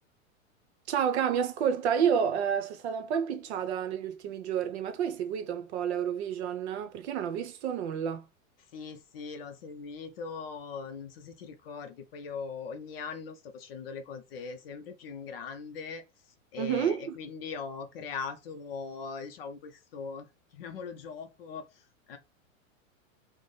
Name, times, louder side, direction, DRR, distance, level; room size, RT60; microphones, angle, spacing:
voice 1, 0.9-8.2 16.6-17.1, right 8 dB, 55° right, 0.7 m, -30 dB
voice 2, 8.7-16.0 16.5-22.2, left 5 dB, 50° left, 0.5 m, -40 dB
3.2 x 2.1 x 3.9 m
supercardioid pair, 155°, 40 cm